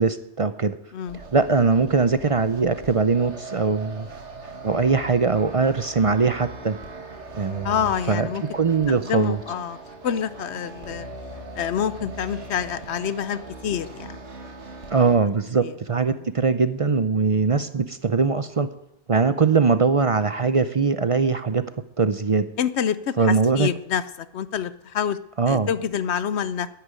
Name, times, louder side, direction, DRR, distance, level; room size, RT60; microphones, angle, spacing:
voice 1, 0.0-0.8 1.3-4.1 4.6-6.8 7.3-7.7 8.1-8.3 8.5-9.4 14.9-18.7 19.1-21.6 22.0-22.5 23.2-23.7 25.4-25.7, right 4 dB, 40° right, 12 dB, 0.5 m, -21 dB
sound 1, 1.1-15.2, right 2 dB, 80° right, 2.1 m, -40 dB
voice 2, 7.6-8.4 9.0-9.8 10.0-11.1 11.5-14.2 15.6-15.7 16.1-16.3 22.6-25.2 25.5-26.7, left 8 dB, 75° left, 15 dB, 1.0 m, -27 dB
10.5 x 10.0 x 9.0 m, 0.83 s
omnidirectional pair, 1.2 m